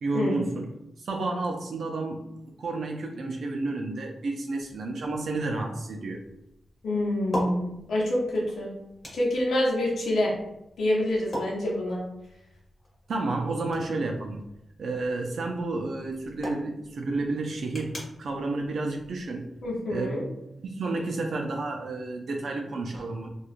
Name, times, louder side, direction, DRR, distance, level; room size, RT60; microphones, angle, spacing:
voice 1, 0.0-0.7 1.0-2.2 2.6-6.2 13.1-14.4 14.8-19.5 19.9-20.3 20.6-23.3, right 2 dB, 70° right, 1 dB, 0.4 m, -31 dB
sound 1, 4.6-19.8, equal, 25° left, 1.0 m, -42 dB
voice 2, 6.8-8.7 9.1-10.3 10.8-12.0 19.6-20.2, left 1 dB, 80° left, -4 dB, 0.7 m, -26 dB
2.9 x 2.3 x 2.4 m, 0.84 s
wide cardioid pair, 110°, 0 cm